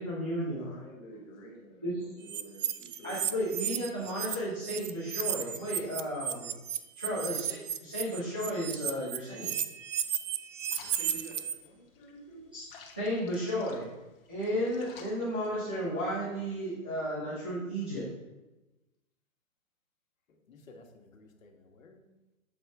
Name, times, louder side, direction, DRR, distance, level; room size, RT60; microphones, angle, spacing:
voice 1, 0.0-0.7 1.8-2.0 3.0-6.5 7.0-9.5 12.5-12.6 13.0-13.9 14.3-18.1, equal, 10° right, -12 dB, 0.4 m, -33 dB
voice 2, 0.6-3.2 7.1-7.3 10.0-10.1 11.0-12.5, right 1 dB, 10° left, -2 dB, 0.8 m, -50 dB
sound 1, 2.3-4.3 4.6-11.5, right 9 dB, 60° right, 0.6 m, -34 dB
sound 2, 10.6-16.0, left 5 dB, 40° left, 1.3 m, -55 dB
voice 3, 20.3-22.1, left 2 dB, 70° left, 3 dB, 1.6 m, -56 dB
7.3 x 6.6 x 3.7 m, 1.0 s
hypercardioid pair, 165°, 41 cm